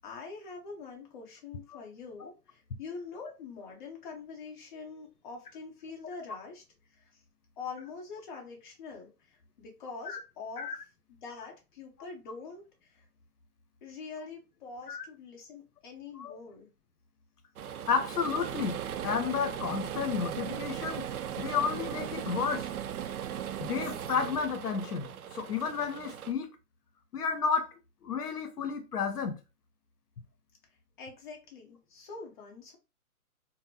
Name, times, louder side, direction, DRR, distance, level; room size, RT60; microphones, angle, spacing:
voice 1, 0.0-6.6 6.9-7.1 7.6-9.1 9.6-10.7 11.1-13.0 13.8-16.7 31.0-32.8, left 4 dB, 35° left, 0.8 m, -44 dB
sound 1, 17.6-26.3, right 9 dB, 70° right, 0.5 m, -38 dB
voice 2, 17.9-18.8 19.0-21.0 21.4-22.7 23.6-26.5 27.1-27.7 28.0-29.4, left 6 dB, 90° left, 0.8 m, -32 dB
3.9 x 2.0 x 2.7 m
hypercardioid pair, 140°, 45 cm